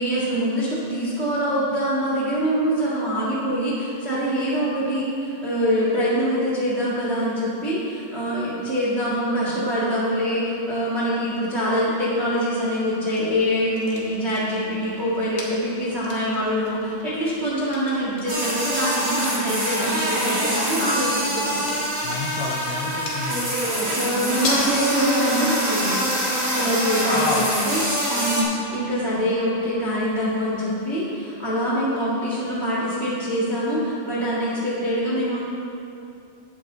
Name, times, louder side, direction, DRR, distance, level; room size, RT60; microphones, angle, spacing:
voice 1, 0.0-21.6 24.0-26.0 26.5-27.3 27.6-27.8 28.2-35.4, equal, 75° right, -8 dB, 0.6 m, -24 dB
sound 1, 13.1-30.8, left 2 dB, 50° left, 1.8 m, -39 dB
sound 2, 18.3-28.4, equal, 35° right, 1.4 m, -25 dB
voice 2, 22.0-23.5 27.1-27.5 28.1-28.2, left 4 dB, 75° left, -1 dB, 2.2 m, -29 dB
11.5 x 8.7 x 3.9 m, 2.7 s
omnidirectional pair, 4.5 m